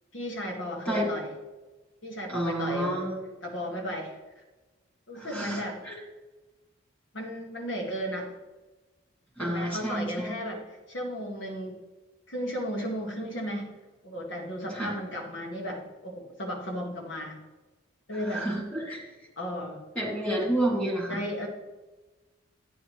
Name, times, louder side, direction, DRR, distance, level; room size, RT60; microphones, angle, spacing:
voice 1, 0.1-1.3 2.0-3.0 3.4-4.4 5.1-5.8 7.1-8.3 9.4-11.8 12.3-13.7 14.0-17.4 18.1-18.5 19.4-19.8 21.1-21.5, equal, 70° left, 0 dB, 1.5 m, -34 dB
voice 2, 2.3-3.2 5.1-6.0 9.4-10.4 14.7-14.9 18.1-19.0 20.0-21.2, right 1 dB, 5° left, -3 dB, 2.3 m, -30 dB
11.5 x 9.4 x 3.1 m, 1.2 s
head